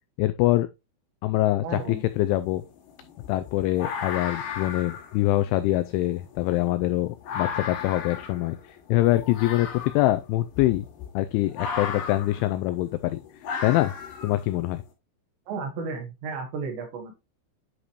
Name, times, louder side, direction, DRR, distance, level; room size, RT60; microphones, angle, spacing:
voice 1, 0.2-0.7 1.2-2.6 3.3-10.9 11.2-13.2 13.6-13.9 14.2-14.8, left 16 dB, 90° left, 2.7 m, -24 dB
voice 2, 1.6-2.1 15.5-17.1, right 4 dB, 65° right, 3.4 m, -33 dB
sound 1, 1.7-1.8 2.3-14.8, left 6 dB, 65° left, 3.8 m, -36 dB
9.9 x 5.0 x 3.0 m
omnidirectional pair, 6.0 m